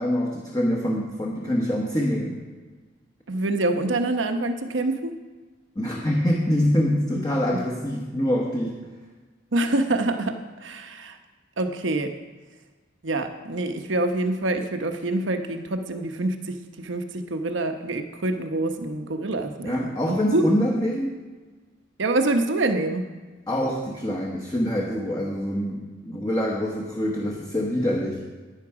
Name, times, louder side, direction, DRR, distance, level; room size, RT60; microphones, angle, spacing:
voice 1, 0.0-2.4 5.8-8.8 19.6-21.1 23.5-28.2, equal, 20° left, -1 dB, 1.1 m, -25 dB
voice 2, 3.3-5.2 9.5-11.2 11.6-12.1 13.0-20.4 22.0-23.1, right 2 dB, 80° right, 7 dB, 0.9 m, -26 dB
11.0 x 9.8 x 4.8 m, 1.3 s
head